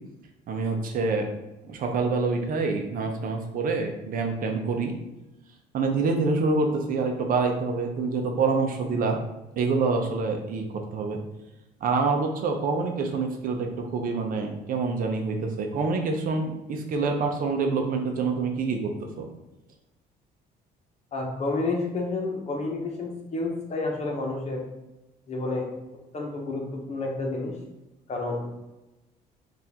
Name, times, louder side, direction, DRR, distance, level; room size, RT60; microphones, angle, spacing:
voice 1, 0.5-1.3 1.6-4.9 5.7-9.2 9.6-11.2 11.8-19.2, right 4 dB, 55° right, 3 dB, 0.7 m, -26 dB
voice 2, 21.1-24.6 25.3-25.7 26.1-27.5 28.1-28.6, left 2 dB, 40° left, 0 dB, 1.0 m, -30 dB
4.3 x 2.6 x 3.5 m, 0.99 s
cardioid pair, 110°, 17 cm